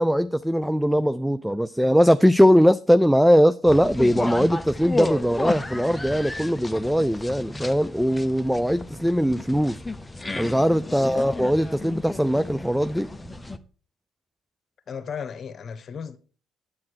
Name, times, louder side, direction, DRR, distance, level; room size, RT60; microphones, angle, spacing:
voice 1, 0.0-9.8 10.4-13.1, equal, ahead, 0.4 m, -20 dB
sound 1, 3.7-13.6, left 2 dB, 15° left, 1.0 m, -33 dB
voice 2, 10.8-11.4 14.9-16.2, left 7 dB, 50° left, 1.3 m, -36 dB
9.5 x 8.6 x 4.6 m
supercardioid pair, 60°, 0 cm